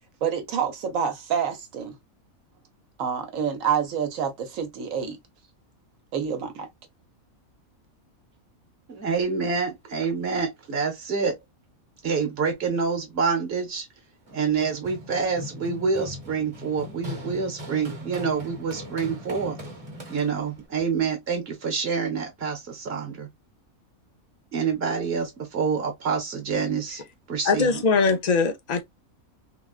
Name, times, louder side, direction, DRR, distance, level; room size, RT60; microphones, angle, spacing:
voice 1, 0.2-2.0 3.0-5.2 6.1-6.7, right 7 dB, 70° right, 1.2 m, -27 dB
voice 2, 8.9-11.3 12.0-13.9 14.3-19.6 20.1-23.3 24.5-27.0 27.3-27.8, right 5 dB, 50° right, 1.2 m, -27 dB
Run, 14.3-20.6, left 1 dB, 30° right, 0.9 m, -39 dB
voice 3, 27.4-28.8, left 4 dB, 60° left, 0.4 m, -21 dB
3.6 x 2.3 x 2.3 m
omnidirectional pair, 1.5 m